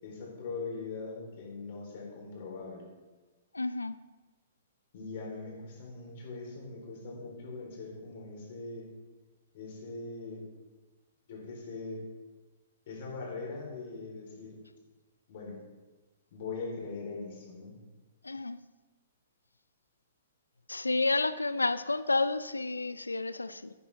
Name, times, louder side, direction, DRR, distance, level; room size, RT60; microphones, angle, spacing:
voice 1, 0.0-2.9 4.9-8.9 9.5-10.5 11.3-12.0 12.9-14.6 15.3-15.6 16.3-17.8, left 3 dB, 50° left, -2 dB, 3.8 m, -41 dB
voice 2, 3.5-4.0 18.2-18.6 20.7-23.7, left 3 dB, 80° left, 14 dB, 0.4 m, -30 dB
11.5 x 9.3 x 3.5 m, 1.2 s
figure-of-eight pair, 115°, 0 cm